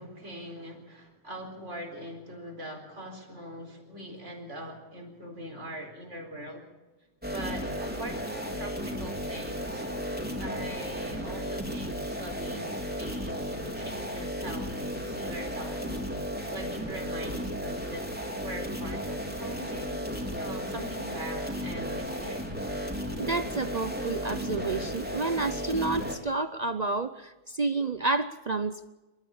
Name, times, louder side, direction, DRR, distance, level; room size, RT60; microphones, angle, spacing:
voice 1, 0.0-6.7 7.3-16.0 16.5-22.8, equal, 75° right, 2 dB, 4.8 m, -42 dB
sound 1, 7.2-26.2, equal, 5° right, 3.8 m, -34 dB
voice 2, 23.2-28.9, right 3 dB, 40° right, 12 dB, 0.7 m, -30 dB
28.0 x 13.5 x 7.1 m, 1.2 s
omnidirectional pair, 1.2 m